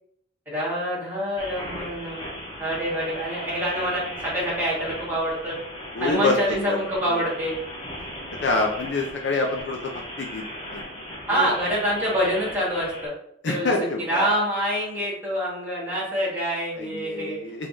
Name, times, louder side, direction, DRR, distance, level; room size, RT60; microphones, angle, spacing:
voice 1, 0.4-2.3 2.6-5.5 6.0-7.5 11.3-13.1 13.5-13.7 14.1-17.4, equal, 10° right, -7 dB, 1.4 m, -26 dB
sound 1, 1.4-13.1, equal, 25° left, 0.8 m, -37 dB
voice 2, 5.9-6.8 7.1-7.2 8.4-10.4 10.7-10.8 11.3-11.5 13.4-14.3 16.8-17.7, left 3 dB, 60° left, 1 dB, 0.5 m, -26 dB
4.5 x 3.7 x 2.6 m, 0.72 s
head